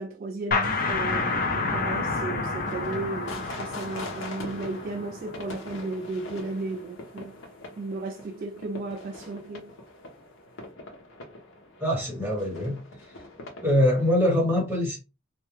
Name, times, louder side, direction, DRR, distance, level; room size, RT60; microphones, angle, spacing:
voice 1, 0.0-7.3 7.8-9.7, right 3 dB, 45° right, 0.3 m, -34 dB
sound 1, 0.5-5.9, left 3 dB, 45° left, 0.4 m, -29 dB
sound 2, 1.5-14.1, left 2 dB, 75° left, 0.7 m, -43 dB
voice 2, 11.8-12.8 13.6-15.0, left 1 dB, 10° right, 1.1 m, -23 dB
2.3 x 2.2 x 3.0 m
head